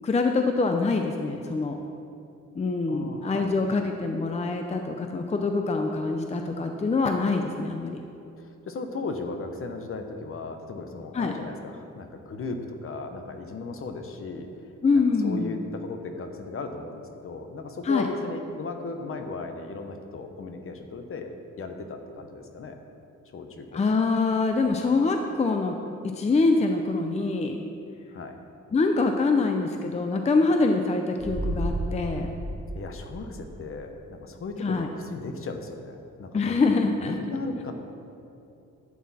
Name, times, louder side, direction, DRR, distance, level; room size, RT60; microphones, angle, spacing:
voice 1, 0.0-1.8 2.6-8.0 11.1-11.3 14.8-15.5 17.8-18.1 23.7-25.7 26.0-27.6 28.7-32.3 34.6-34.9 36.3-37.2, left 3 dB, 20° left, 4 dB, 0.5 m, -25 dB
voice 2, 2.9-3.6 8.4-14.5 15.2-22.8 23.3-23.8 28.1-28.4 32.7-36.7 37.0-37.7, left 3 dB, 45° left, 5 dB, 0.9 m, -36 dB
sound 1, 31.2-33.9 34.2-34.3, right 1 dB, 30° right, 2.0 m, -33 dB
11.0 x 8.4 x 4.2 m, 2.7 s
cardioid pair, 140°, 30 cm